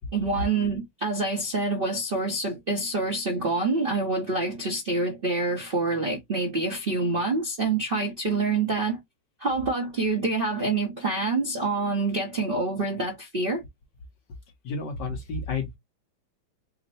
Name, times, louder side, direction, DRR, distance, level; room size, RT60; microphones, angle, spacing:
voice 1, 0.1-9.0 9.4-13.6, right 3 dB, 40° right, 0.8 m, -26 dB
voice 2, 14.6-15.8, left 4 dB, 60° left, 1.6 m, -31 dB
3.9 x 2.2 x 4.0 m
omnidirectional pair, 2.3 m